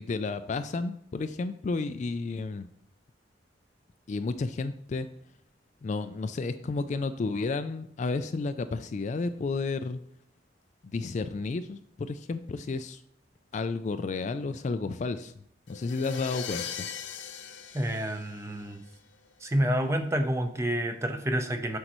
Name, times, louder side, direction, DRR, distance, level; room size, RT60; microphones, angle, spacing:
voice 1, 0.0-2.7 4.1-5.1 5.8-10.0 10.8-13.0 13.5-16.9, left 3 dB, 40° left, 10 dB, 0.3 m, -32 dB
sound 1, 15.7-18.9, left 7 dB, 75° left, 0.7 m, -39 dB
voice 2, 17.7-18.8 19.4-21.8, equal, 15° right, 6 dB, 0.7 m, -28 dB
7.9 x 6.4 x 3.0 m, 0.65 s
head